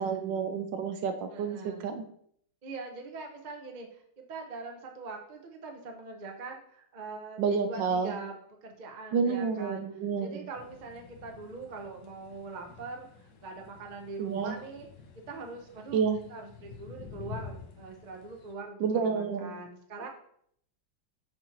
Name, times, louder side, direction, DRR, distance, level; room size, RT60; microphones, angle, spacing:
voice 1, 0.0-2.0 7.4-8.2 9.1-10.3 14.2-14.5 15.9-16.2 18.8-19.5, right 6 dB, 75° right, 7 dB, 1.2 m, -29 dB
voice 2, 1.3-2.0 2.6-9.9 10.2-14.9 15.3-16.0 16.3-20.1, right 3 dB, 35° right, 2 dB, 0.7 m, -43 dB
sound 1, 10.6-18.5, left 6 dB, 65° left, 1.4 m, -49 dB
6.6 x 3.1 x 5.8 m, 0.66 s
omnidirectional pair, 2.2 m